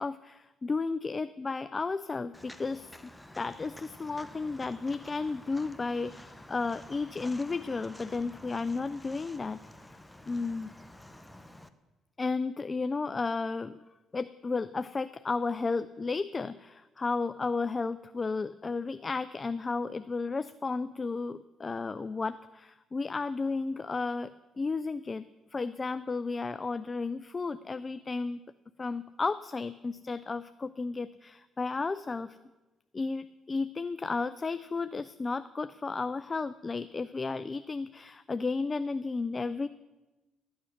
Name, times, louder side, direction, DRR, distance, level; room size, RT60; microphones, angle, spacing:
voice 1, 0.0-9.6 9.9-10.0 10.3-10.7 12.2-13.8 14.1-25.3 25.5-28.4 28.8-32.4 32.9-39.7, left 4 dB, 30° left, 13 dB, 0.4 m, -33 dB
Walk footsteps, 2.3-11.7, left 1 dB, 5° left, 0.8 m, -50 dB
12.5 x 8.0 x 6.3 m, 1.1 s
cardioid pair, 80°, 0 cm